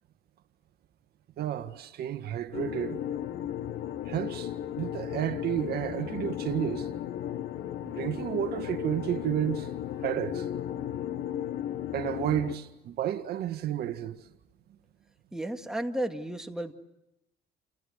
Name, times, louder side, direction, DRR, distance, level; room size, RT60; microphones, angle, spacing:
voice 1, 1.4-3.0 4.1-6.9 7.8-9.7 10.0-10.5 11.9-14.2, right 11 dB, 70° right, 1.8 m, -31 dB
sound 1, 2.5-12.6, left 10 dB, 70° left, 1.5 m, -35 dB
voice 2, 15.3-16.7, right 1 dB, 5° right, 2.1 m, -33 dB
29.5 x 29.0 x 6.6 m
cardioid pair, 110°, 17 cm